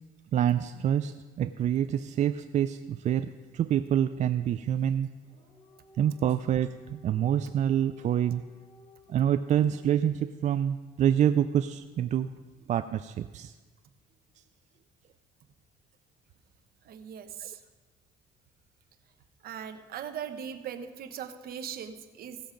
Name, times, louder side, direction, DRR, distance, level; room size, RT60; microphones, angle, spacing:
voice 1, 0.3-5.1 6.0-8.4 9.1-12.3 12.7-13.5, right 10 dB, 45° right, 10 dB, 0.4 m, -27 dB
Dog, 5.1-10.3, equal, 40° left, 3.7 m, -59 dB
voice 2, 16.8-17.6 19.4-22.4, right 8 dB, 65° right, 9 dB, 1.0 m, -39 dB
16.0 x 7.0 x 5.1 m, 1.3 s
cardioid pair, 110°, 17 cm